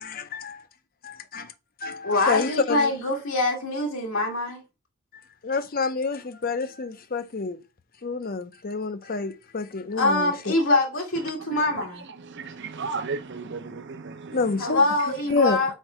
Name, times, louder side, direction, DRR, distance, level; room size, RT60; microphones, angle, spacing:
voice 1, 0.0-0.6 1.0-1.5 1.8-2.9 5.4-7.6 8.0-10.5 14.3-14.8 15.1-15.6, left 4 dB, 45° left, 0.6 m, -28 dB
voice 2, 2.0-4.6 9.9-12.0 14.6-15.7, left 2 dB, 75° left, 1.5 m, -24 dB
voice 3, 12.2-14.4, right 4 dB, 55° right, 0.7 m, -34 dB
4.5 x 4.5 x 4.9 m
head